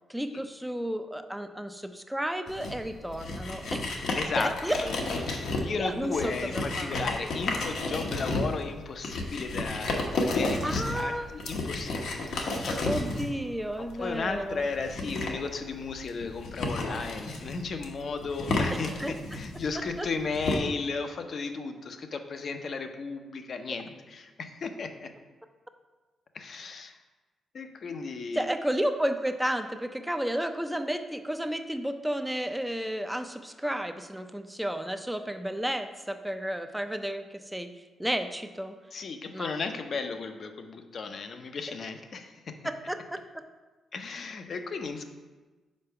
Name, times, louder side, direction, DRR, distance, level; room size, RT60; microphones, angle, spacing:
voice 1, 0.1-4.0 4.4-4.8 5.8-7.0 10.6-11.3 12.8-14.7 19.0-19.1 20.0-20.1 28.3-37.7 38.0-38.8 39.3-39.5 42.6-43.2, equal, 5° right, 7 dB, 0.4 m, -32 dB
sound 1, 2.5-20.6, left 2 dB, 75° left, 1.0 m, -32 dB
voice 2, 4.1-4.5 4.8-4.9 5.2-12.8 14.0-25.1 26.3-27.0 27.5-28.5 38.9-42.6 43.9-45.0, left 4 dB, 50° left, 7 dB, 0.6 m, -35 dB
5.2 x 4.5 x 5.6 m, 1.3 s
cardioid pair, 120°, 0 cm